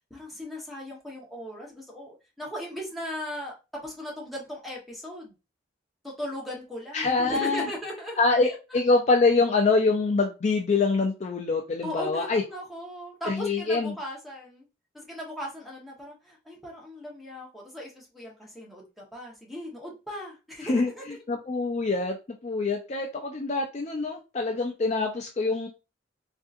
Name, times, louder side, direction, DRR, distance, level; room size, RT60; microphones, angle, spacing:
voice 1, 0.1-5.3 6.0-8.8 11.8-14.7 14.9-21.2, equal, ahead, -3 dB, 1.0 m, -38 dB
voice 2, 6.9-7.7 8.2-12.4 13.3-13.9 20.6-20.9 21.3-22.2 22.4-25.7, left 3 dB, 35° left, 2 dB, 0.4 m, -25 dB
3.6 x 2.6 x 2.5 m, 0.29 s
head